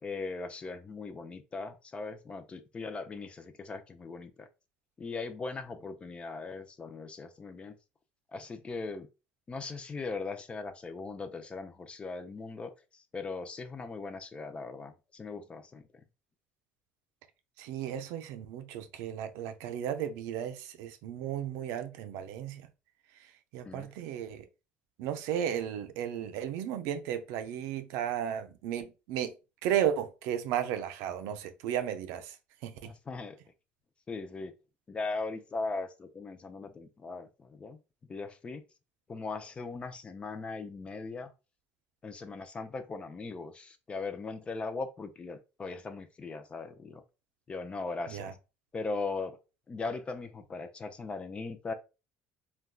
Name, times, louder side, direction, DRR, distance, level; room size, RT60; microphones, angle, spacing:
voice 1, 0.0-4.5 5.0-7.8 8.3-9.1 9.5-15.8 23.7-23.9 32.8-33.4 34.1-34.5 34.9-37.8 38.1-38.6 39.1-41.3 42.0-47.0 47.5-48.4 48.7-49.4 49.7-51.7, left 3 dB, 25° left, 0.4 m, -39 dB
voice 2, 17.6-22.7 23.5-24.4 25.0-29.3 29.6-32.3 32.6-32.9 48.1-48.3, right 10 dB, 80° right, 0.4 m, -34 dB
3.5 x 2.2 x 2.2 m
cardioid pair, 110°, 5 cm